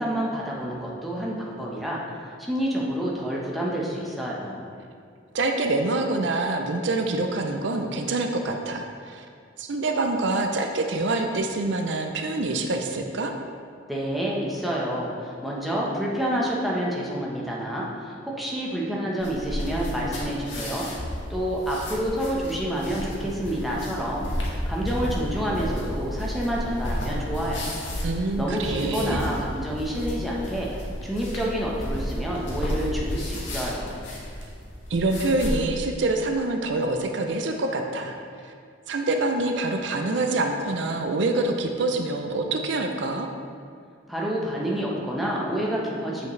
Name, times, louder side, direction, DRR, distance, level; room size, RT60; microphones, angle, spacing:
voice 1, 0.0-2.0 2.4-4.6 13.9-20.9 21.3-27.9 28.3-30.7 31.0-34.0 44.1-46.3, equal, ahead, -5 dB, 1.0 m, -28 dB
voice 2, 5.3-9.3 9.6-13.3 28.0-29.2 34.9-38.1 38.4-38.5 38.9-43.3, right 2 dB, 70° right, 4 dB, 0.5 m, -26 dB
sound 1, 19.2-35.5, equal, 75° left, 1.5 m, -32 dB
7.9 x 7.1 x 3.2 m, 2.2 s
head